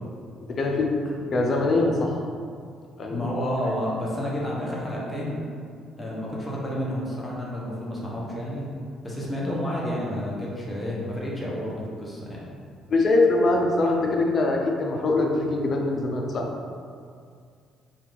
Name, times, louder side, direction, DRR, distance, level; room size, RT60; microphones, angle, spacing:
voice 1, 0.4-0.9 1.3-2.2 3.0-3.3 12.9-16.5, left 2 dB, 45° left, 1 dB, 0.5 m, -23 dB
voice 2, 3.1-5.4 6.0-8.7 9.0-12.4, equal, 15° left, -5 dB, 0.8 m, -30 dB
2.8 x 2.4 x 3.7 m, 2.2 s
supercardioid pair, 70°, 0 cm